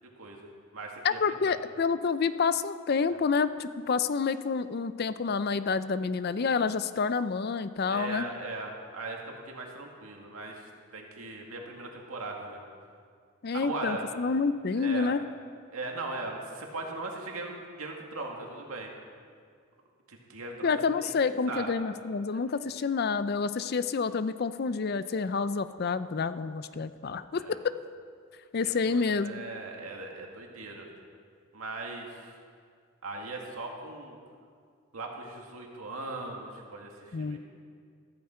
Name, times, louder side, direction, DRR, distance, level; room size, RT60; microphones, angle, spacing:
voice 1, 0.0-1.5 3.1-3.2 7.9-12.6 13.5-14.1 14.8-15.1 15.7-18.9 20.1-21.7 27.3-27.6 28.6-30.9 31.5-32.3 33.0-34.2 34.9-37.4, right 2 dB, 80° right, 1 dB, 2.1 m, -39 dB
voice 2, 1.0-8.3 13.4-15.2 20.6-27.6 28.5-29.4 37.1-37.4, left 5 dB, 45° left, 13 dB, 0.4 m, -28 dB
14.5 x 14.5 x 4.4 m, 2.1 s
head